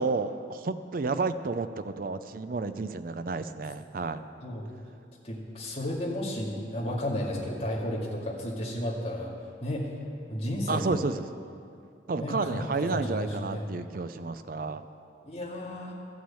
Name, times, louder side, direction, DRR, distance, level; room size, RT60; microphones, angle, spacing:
voice 1, 0.0-4.2 10.7-11.2 12.1-14.8, right 3 dB, 50° right, 11 dB, 0.4 m, -31 dB
voice 2, 5.2-9.3 9.6-9.9 10.3-11.0 12.2-13.7 15.2-15.9, left 1 dB, 30° left, -5 dB, 2.1 m, -33 dB
13.0 x 6.3 x 8.3 m, 2.4 s
head